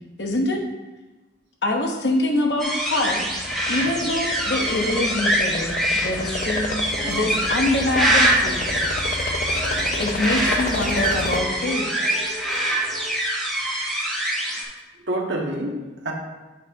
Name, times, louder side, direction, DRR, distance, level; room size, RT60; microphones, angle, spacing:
voice 1, 0.2-0.6 1.6-3.2 3.7-6.7 7.1-8.7 10.0-11.9, left 2 dB, 70° left, 1 dB, 1.0 m, -24 dB
sound 1, 2.6-14.6, right 1 dB, ahead, 1.6 m, -24 dB
sound 2, 2.7-11.4, left 3 dB, 45° left, 0.5 m, -32 dB
voice 2, 6.1-6.5 15.1-16.1, right 1 dB, 75° right, 0 dB, 1.2 m, -28 dB
sound 3, 6.7-13.1, left 2 dB, 35° right, 1.5 m, -38 dB
8.2 x 3.4 x 5.3 m, 1.2 s
head